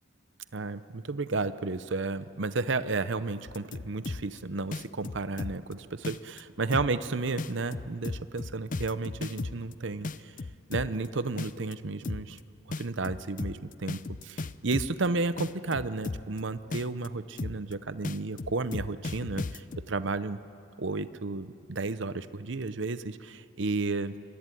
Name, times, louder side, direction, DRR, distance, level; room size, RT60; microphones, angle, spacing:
voice 1, 0.5-10.3 10.7-12.4 12.8-20.4 20.8-24.2, right 3 dB, 60° right, 13 dB, 0.7 m, -32 dB
sound 1, 3.5-4.4 4.7-5.7 6.0-6.4 6.7-7.1 7.4-9.7 10.0-11.1 11.4-11.7 12.0-12.4 12.7-15.1 15.4-16.4 16.7-17.1 17.4-17.7 18.0-19.8, left 3 dB, 40° left, 0.5 m, -35 dB
26.0 x 21.5 x 9.2 m, 2.9 s
head